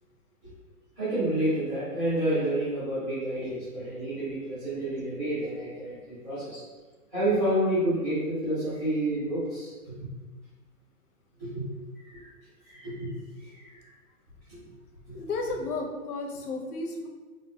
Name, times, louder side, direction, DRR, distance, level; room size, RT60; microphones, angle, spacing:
voice 1, 1.0-6.6 7.1-9.9 11.4-11.6 12.0-12.3 12.6-13.1 13.4-13.8 14.5-14.7 15.1-15.2, right 1 dB, ahead, -24 dB, 0.4 m, -29 dB
voice 2, 15.1-17.1, left 3 dB, 75° left, 1 dB, 0.9 m, -33 dB
4.7 x 2.9 x 2.3 m, 1.3 s
hypercardioid pair, 165°, 45 cm